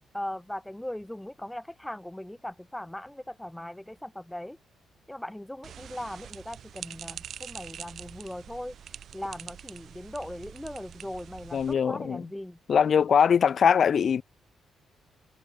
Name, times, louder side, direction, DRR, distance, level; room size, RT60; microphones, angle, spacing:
voice 1, 0.1-4.6 5.1-8.7 9.1-12.6, left 1 dB, 5° left, 1.6 m, -39 dB
sound 1, 5.6-11.7, right 9 dB, 50° right, 7.1 m, -44 dB
voice 2, 11.5-12.2 12.7-14.2, left 7 dB, 40° left, 1.1 m, -22 dB
cardioid pair, 170°, 0 cm